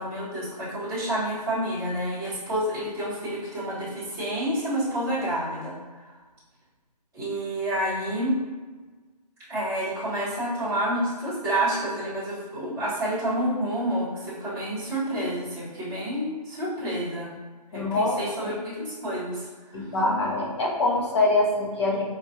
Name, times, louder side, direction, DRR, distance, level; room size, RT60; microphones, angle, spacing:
voice 1, 0.0-5.7 7.1-8.4 9.5-17.3 17.7-19.5 19.7-19.8, right 1 dB, 10° right, -14 dB, 0.9 m, -29 dB
voice 2, 17.7-18.2 18.4-18.5 19.7-22.0, left 2 dB, 40° left, -2 dB, 0.8 m, -24 dB
4.4 x 2.3 x 2.7 m, 1.3 s
hypercardioid pair, 165°, 21 cm